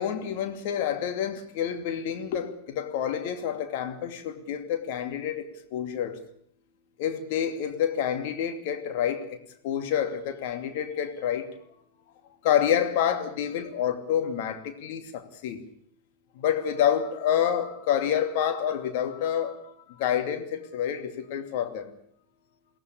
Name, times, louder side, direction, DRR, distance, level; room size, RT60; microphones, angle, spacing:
voice 1, 0.0-6.2 7.0-9.4 9.6-11.5 12.4-15.6 16.3-22.0, left 9 dB, 50° left, 2.7 m, -28 dB
22.5 x 17.5 x 8.6 m
figure-of-eight pair, 90°, 0 cm